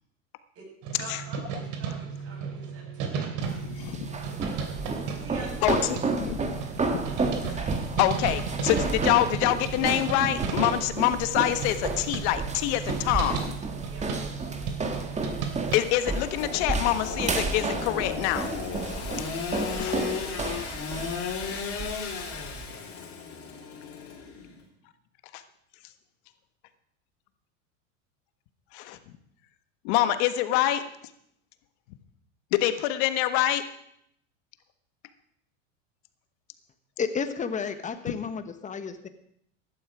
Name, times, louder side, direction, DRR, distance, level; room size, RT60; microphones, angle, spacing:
sound 1, 0.8-15.8, right 6 dB, 55° right, 2.9 m, -35 dB
voice 1, 1.0-3.3 5.2-5.9 13.8-14.2, right 3 dB, 40° right, -2 dB, 7.9 m, -45 dB
sound 2, 3.4-22.6, right 3 dB, 20° right, 1.8 m, -32 dB
voice 2, 3.7-4.1 5.6-6.6 6.9-7.0 7.5-7.7 8.0-13.5 15.7-18.5 19.8-20.0 25.3-25.4 28.7-29.0 29.8-30.8 32.5-33.6, left 13 dB, 60° left, 10 dB, 1.4 m, -26 dB
Engine / Sawing, 16.4-24.6, left 6 dB, 35° left, 3.6 m, -35 dB
voice 3, 37.0-39.1, left 6 dB, 20° left, 10 dB, 1.2 m, -31 dB
16.0 x 11.5 x 4.9 m, 0.72 s
supercardioid pair, 115°, 38 cm